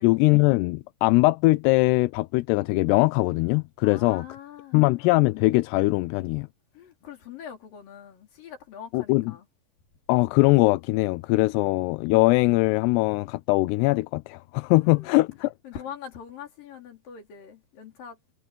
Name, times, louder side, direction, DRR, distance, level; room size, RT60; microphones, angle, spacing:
voice 1, 0.0-4.3 4.7-6.5 8.9-9.2 10.1-15.5, left 22 dB, 85° left, 2.7 m, -21 dB
voice 2, 3.8-4.9 6.7-9.5 14.8-15.3 15.6-18.2, left 8 dB, 60° left, 5.3 m, -43 dB
omnidirectional pair, 4.7 m